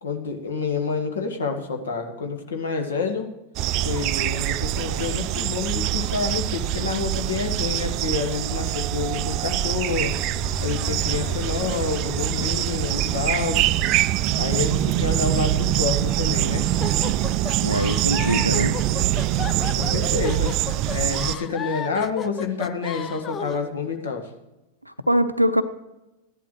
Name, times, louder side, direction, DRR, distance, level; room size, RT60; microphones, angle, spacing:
voice 1, 0.0-3.3 3.8-10.2 10.6-13.7 14.3-16.7 19.7-20.5 20.9-24.3, left 5 dB, 65° left, 4 dB, 1.7 m, -28 dB
sound 1, 3.6-21.4, right 14 dB, 40° right, 0.3 m, -24 dB
sound 2, 9.8-21.3, right 3 dB, 20° right, 0.9 m, -37 dB
sound 3, 16.8-23.6, left 7 dB, 25° left, 0.5 m, -34 dB
voice 2, 17.6-18.8 24.9-25.6, equal, 90° right, 12 dB, 0.6 m, -22 dB
15.0 x 11.0 x 3.2 m, 0.98 s
figure-of-eight pair, 90°, 0 cm